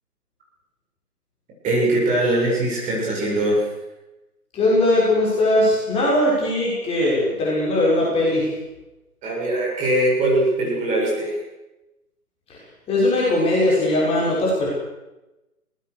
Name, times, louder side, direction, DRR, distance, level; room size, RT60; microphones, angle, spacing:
voice 1, 1.6-3.7 9.2-11.4, right 1 dB, 15° right, -4 dB, 7.5 m, -21 dB
voice 2, 4.5-8.5 12.9-14.7, left 1 dB, 10° left, -6 dB, 6.3 m, -19 dB
25.5 x 19.0 x 6.7 m, 1.0 s
figure-of-eight pair, 140°, 46 cm